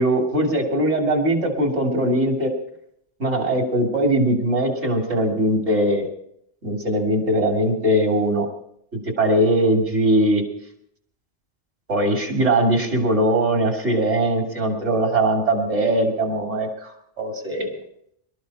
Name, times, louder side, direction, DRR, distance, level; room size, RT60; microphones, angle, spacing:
voice 1, 0.0-2.5 3.2-6.1 6.6-8.5 8.9-10.4 11.9-17.7, right 1 dB, 85° right, 2 dB, 3.3 m, -21 dB
24.5 x 13.0 x 4.2 m, 0.72 s
omnidirectional pair, 1.2 m